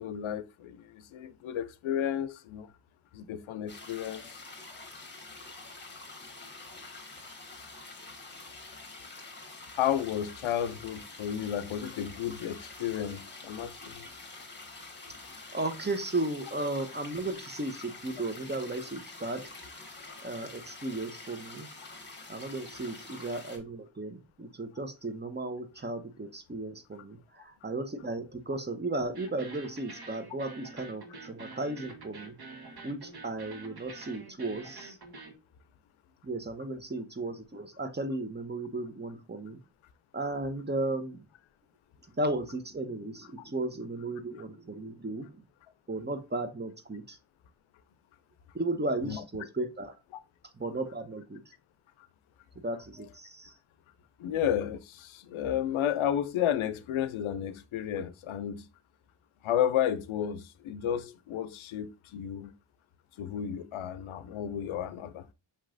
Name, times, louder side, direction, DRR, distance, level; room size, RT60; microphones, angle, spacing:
voice 1, 0.0-2.7 3.1-4.4 9.7-14.1 49.0-49.2 54.2-58.6 59.4-62.5 63.2-65.3, left 10 dB, 85° left, 0.5 m, -32 dB
sound 1, 3.7-23.6, left 3 dB, 20° left, 1.3 m, -47 dB
voice 2, 15.5-19.5 20.2-21.7 22.3-32.3 32.8-35.0 36.2-39.6 40.1-41.2 42.1-45.4 45.9-47.2 48.5-49.9 50.6-51.4 52.6-53.5, right 2 dB, 20° right, 0.7 m, -35 dB
sound 2, 29.1-35.3, right 3 dB, 55° right, 1.1 m, -47 dB
5.6 x 3.0 x 2.5 m
cardioid pair, 60°, 47 cm